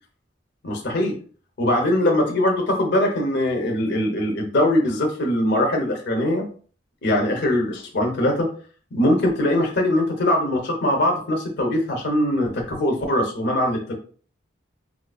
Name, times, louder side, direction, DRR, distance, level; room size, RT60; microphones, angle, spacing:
voice 1, 0.6-1.2 1.6-6.4 7.0-8.5 8.9-13.9, left 1 dB, 60° left, 1 dB, 0.8 m, -21 dB
4.4 x 2.5 x 2.3 m, 0.42 s
head